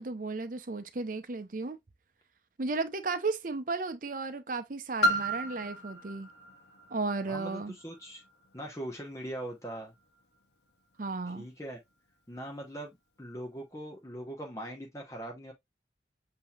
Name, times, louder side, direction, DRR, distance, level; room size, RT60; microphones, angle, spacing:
voice 1, 0.0-1.8 2.6-6.3 6.9-7.8 11.0-11.5, right 3 dB, 45° right, 0.7 m, -34 dB
Piano, 5.0-10.5 11.2-11.3, right 1 dB, 65° left, 0.9 m, -35 dB
voice 2, 7.3-8.2 8.5-9.9 11.3-11.8 12.3-15.5, right 1 dB, 15° left, 0.9 m, -41 dB
7.6 x 2.8 x 2.4 m
head